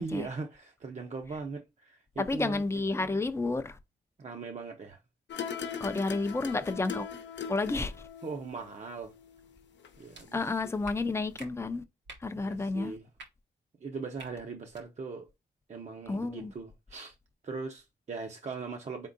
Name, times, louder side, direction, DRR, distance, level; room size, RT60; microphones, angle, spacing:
voice 1, 0.0-2.6 4.2-5.0 8.2-9.1 10.0-10.4 12.3-13.1 13.8-15.3 15.7-17.2 17.4-19.1, right 4 dB, 40° right, 0.6 m, -39 dB
voice 2, 2.2-3.8 5.8-7.1 7.5-7.9 10.3-11.8 12.2-12.9 16.1-16.5, left 3 dB, 15° left, 0.4 m, -31 dB
sound 1, 5.3-10.4 10.6-10.7, left 7 dB, 90° left, 0.8 m, -41 dB
sound 2, 10.1-10.3 10.8-11.0 11.4-11.5 12.1-12.3 13.1-13.3 14.2-14.3 14.7-14.8, right 3 dB, 90° right, 1.5 m, -47 dB
4.5 x 3.6 x 2.5 m
wide cardioid pair, 150°, 18 cm